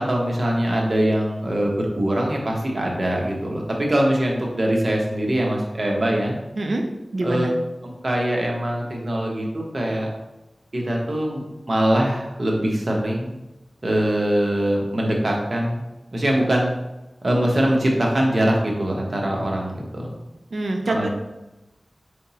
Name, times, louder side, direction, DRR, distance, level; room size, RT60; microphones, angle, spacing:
voice 1, 0.0-6.3 7.2-7.5 8.0-10.1 10.7-13.3 13.8-15.8 16.1-16.7 17.2-20.1 20.9-21.1, right 1 dB, 50° right, -1 dB, 0.9 m, -22 dB
voice 2, 7.1-7.5 20.5-21.1, right 2 dB, 75° right, 3 dB, 0.5 m, -25 dB
3.9 x 3.4 x 2.8 m, 0.99 s
wide cardioid pair, 55°, 0 cm